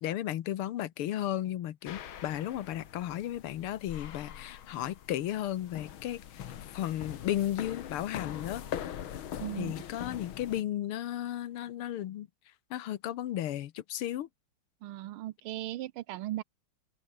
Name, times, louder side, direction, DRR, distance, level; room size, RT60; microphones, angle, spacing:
voice 1, 0.0-6.4 6.7-8.6 9.6-12.3 12.7-14.3, left 12 dB, 90° left, 1.9 m, -34 dB
sound 1, 1.9-10.6, left 10 dB, 75° left, 2.1 m, -42 dB
voice 2, 9.4-9.8 14.8-16.4, right 15 dB, 80° right, 1.6 m, -37 dB
open air
omnidirectional pair, 2.3 m